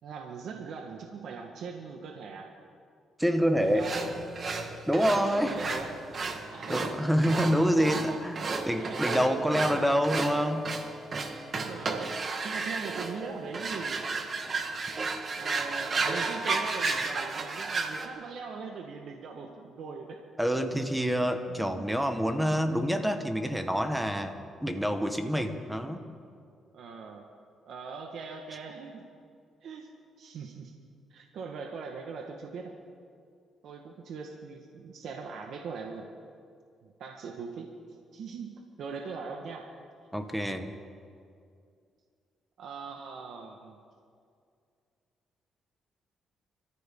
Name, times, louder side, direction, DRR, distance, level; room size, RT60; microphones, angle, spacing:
voice 1, 0.0-2.5 3.6-4.1 5.1-5.9 6.5-7.0 7.5-8.2 8.7-9.0 9.5-9.9 11.6-14.1 15.3-20.2 21.5-22.6 26.7-27.3 27.6-29.0 29.6-29.9 30.2-30.7 31.1-32.7 33.6-36.1 36.8-37.7 38.1-39.7 40.1-40.6 42.6-43.8, right 5 dB, 70° right, 2 dB, 1.5 m, -41 dB
voice 2, 3.2-3.9 4.9-5.6 6.7-10.7 20.4-26.0 40.1-40.7, equal, 5° right, 7 dB, 1.4 m, -27 dB
sound 1, 3.8-18.1, right 4 dB, 40° right, 1.6 m, -33 dB
26.0 x 14.0 x 3.8 m, 2.3 s
cardioid pair, 90°, 0 cm